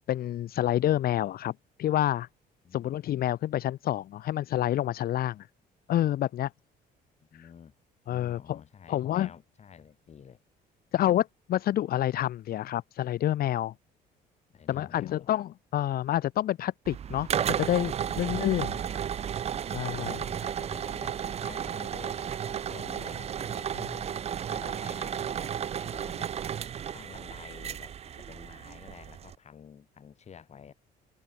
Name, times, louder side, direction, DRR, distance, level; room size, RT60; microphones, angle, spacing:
voice 1, 0.0-1.5 1.8-2.3 2.7-5.5 5.9-6.5 7.3-7.5 8.1-8.6 8.9-9.3 10.9-13.7 14.7-18.8 19.7-20.2, left 12 dB, 60° left, 2.0 m, -28 dB
voice 2, 7.3-7.8 8.1-10.4 14.5-15.3 18.1-19.1 19.8-23.8 24.5-26.4 26.9-30.7, left 7 dB, 40° left, 6.6 m, -50 dB
sound 1, 16.8-29.3, right 9 dB, 40° right, 0.6 m, -33 dB
cardioid pair, 110°, 17 cm